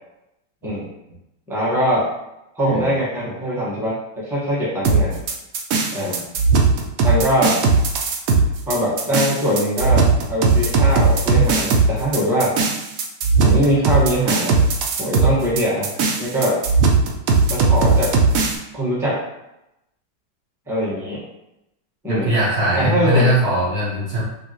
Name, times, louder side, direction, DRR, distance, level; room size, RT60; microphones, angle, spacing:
voice 1, 1.5-2.1 2.5-5.2 5.9-6.2 7.0-7.6 8.7-12.6 13.4-14.6 15.0-15.9 16.2-16.6 17.5-18.1 18.7-19.2 20.7-21.2 22.0-22.3 22.7-23.3, equal, ahead, -7 dB, 1.0 m, -22 dB
sound 1, 4.8-18.6, right 4 dB, 85° right, 0.7 m, -18 dB
voice 2, 22.1-24.2, equal, 60° right, -6 dB, 1.3 m, -20 dB
5.3 x 2.4 x 3.0 m, 0.88 s
omnidirectional pair, 2.1 m